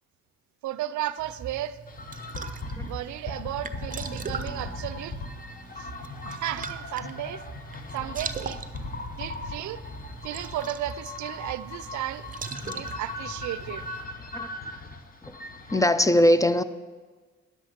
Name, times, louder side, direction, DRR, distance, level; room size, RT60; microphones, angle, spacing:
voice 1, 0.6-1.8 2.8-5.2 5.8-5.9 6.2-7.4 7.9-8.6 9.2-9.8 10.2-12.3 12.7-13.8, right 13 dB, 70° right, 0.5 m, -34 dB
sound 1, 1.2-14.0, right 5 dB, 25° right, 0.6 m, -41 dB
sound 2, 1.9-15.8, left 2 dB, 30° left, 1.0 m, -39 dB
sound 3, 3.5-9.4, equal, 65° left, 3.2 m, -51 dB
voice 2, 15.7-16.6, left 1 dB, 10° left, 0.4 m, -21 dB
10.5 x 7.7 x 5.1 m
cardioid pair, 90°, 30 cm